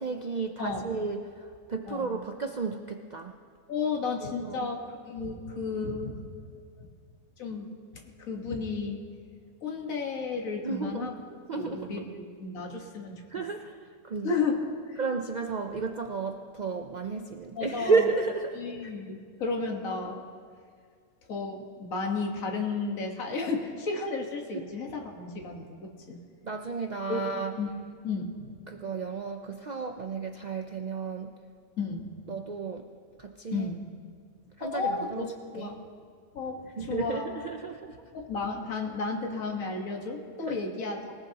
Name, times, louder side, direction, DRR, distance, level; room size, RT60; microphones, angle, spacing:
voice 1, 0.0-3.3 4.2-4.7 10.6-11.1 11.5-12.0 13.3-13.8 14.0-14.3 15.0-18.9 24.5-24.6 26.4-27.6 28.7-31.3 32.3-32.9 33.2-33.7 34.6-35.3 35.5-35.7 36.8-38.0 40.4-40.6, right 4 dB, 55° right, 4 dB, 0.4 m, -32 dB
voice 2, 3.7-4.8 5.1-6.3 7.4-7.7 7.9-9.0 9.6-11.1 11.6-13.3 14.2-15.0 17.5-18.0 18.6-20.2 21.3-26.2 27.1-27.2 27.6-27.7 28.0-28.5 31.8-32.1 33.5-33.8 34.6-35.8 36.3-37.3 38.1-41.1, left 4 dB, 60° left, 0 dB, 1.9 m, -33 dB
25.0 x 18.5 x 2.9 m, 2.1 s
omnidirectional pair, 1.7 m